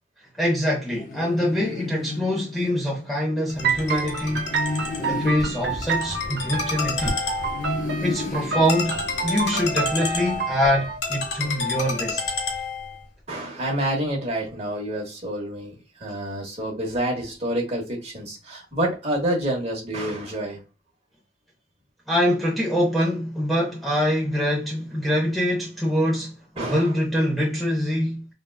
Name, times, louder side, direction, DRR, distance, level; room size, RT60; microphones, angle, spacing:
voice 1, 0.4-4.6 5.0-7.2 8.0-12.2 22.1-28.3, equal, ahead, 0.6 m, -24 dB
sound 1, 0.9-3.1 4.2-6.9 7.4-9.7, left 3 dB, 45° left, 0.4 m, -33 dB
Ringtone, 3.5-13.1, left 4 dB, 65° left, 1.0 m, -30 dB
sound 2, 3.6-11.0, right 5 dB, 60° right, 0.6 m, -29 dB
voice 2, 13.3-20.6 26.6-27.0, right 1 dB, 35° right, 1.0 m, -28 dB
3.7 x 2.2 x 2.2 m
head